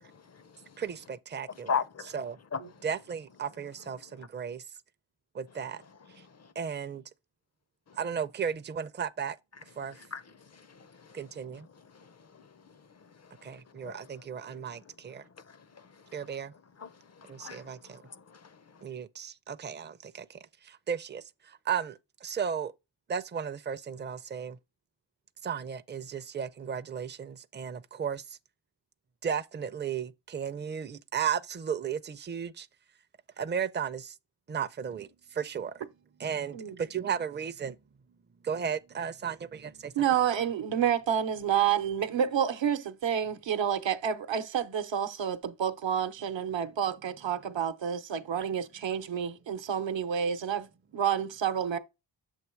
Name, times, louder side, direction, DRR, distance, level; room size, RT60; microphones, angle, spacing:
voice 1, 0.0-1.2 1.5-2.9 3.3-4.3 5.5-6.5 7.9-8.3 9.5-18.8, left 6 dB, 35° left, 0.5 m, -42 dB
voice 2, 0.8-1.7 2.8-4.6 5.3-5.8 6.6-7.0 8.0-9.4 9.8-10.0 11.1-11.7 13.4-15.2 16.1-16.5 17.3-17.8 18.8-20.4 20.6-22.7 23.1-24.6 25.4-28.2 29.2-32.7 33.4-34.1 34.5-35.8 36.2-37.8 38.4-39.9, right 7 dB, 25° right, 0.4 m, -35 dB
voice 3, 39.9-50.7 50.9-51.8, right 8 dB, 75° right, 0.9 m, -29 dB
7.3 x 3.1 x 4.4 m
wide cardioid pair, 85°, 45 cm